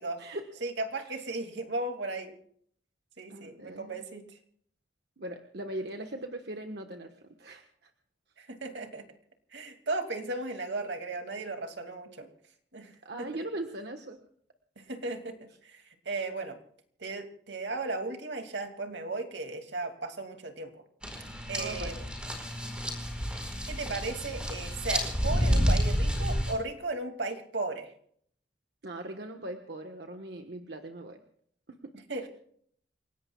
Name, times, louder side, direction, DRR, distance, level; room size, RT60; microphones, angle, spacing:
voice 1, 0.6-2.3 3.2-4.3 8.4-9.0 9.5-12.3 12.7-12.9 13.2-13.3 14.8-16.6 17.0-20.8 21.5-22.0 23.7-27.9 32.1-32.3, right 2 dB, 85° right, 5 dB, 2.4 m, -36 dB
voice 2, 3.3-4.0 5.2-7.1 7.4-7.9 13.0-14.2 21.6-22.0 28.8-31.2 31.7-31.9 32.2-32.3, right 1 dB, 65° right, 4 dB, 1.3 m, -40 dB
sound 1, 21.0-26.5, equal, 5° right, 4.6 m, -29 dB
29.0 x 17.5 x 2.3 m, 0.63 s
head